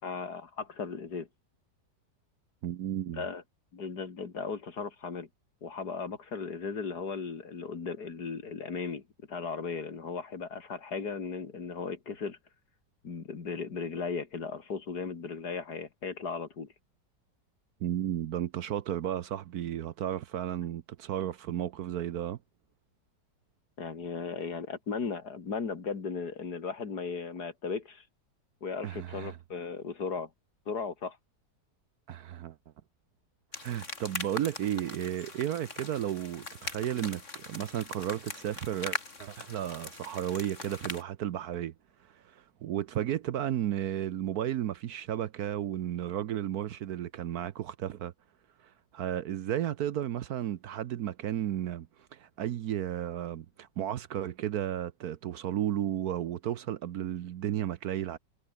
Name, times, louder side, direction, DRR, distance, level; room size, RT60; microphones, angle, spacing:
voice 1, 0.0-1.3 3.1-3.4 3.7-5.3 5.6-12.4 13.0-16.7 23.8-28.0 28.6-30.3 30.7-31.2, left 5 dB, 60° left, 2.9 m, -36 dB
voice 2, 2.6-3.3 17.8-22.4 28.8-29.4 32.1-32.5 33.6-41.7 42.1-48.1 48.9-51.9 52.1-58.2, right 11 dB, 65° right, 1.1 m, -33 dB
sound 1, 33.5-41.0, left 3 dB, 40° left, 3.5 m, -41 dB
omnidirectional pair, 1.9 m